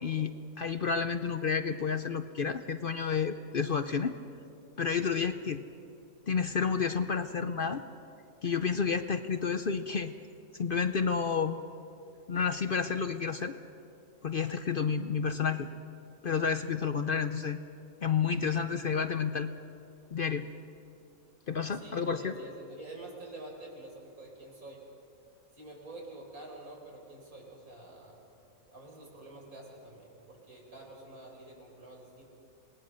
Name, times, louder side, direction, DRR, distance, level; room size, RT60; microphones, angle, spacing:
voice 1, 0.0-4.1 4.8-5.6 6.3-7.8 8.4-10.1 10.5-11.6 12.3-13.5 14.2-15.7 16.2-17.6 18.0-19.5 20.1-20.5 21.5-22.3, left 6 dB, 50° left, 9 dB, 0.7 m, -30 dB
voice 2, 21.7-24.8 25.5-28.2 28.7-32.2, right 2 dB, 80° right, -1 dB, 5.3 m, -48 dB
27.5 x 20.0 x 6.4 m, 2.7 s
omnidirectional pair, 1.5 m